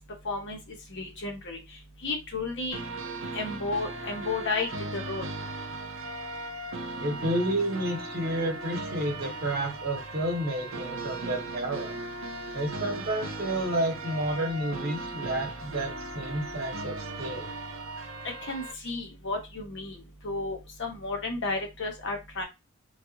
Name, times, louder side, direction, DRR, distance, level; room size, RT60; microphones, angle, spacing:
voice 1, 0.2-0.6 0.9-1.6 2.0-2.8 3.3-5.3 18.4-22.4, left 3 dB, 60° left, 2 dB, 0.9 m, -33 dB
sound 1, 2.7-18.7, right 2 dB, 65° right, 0.6 m, -37 dB
voice 2, 7.0-12.0 12.5-17.5, right 1 dB, 50° right, 1 dB, 1.0 m, -30 dB
3.2 x 2.4 x 2.8 m, 0.23 s
head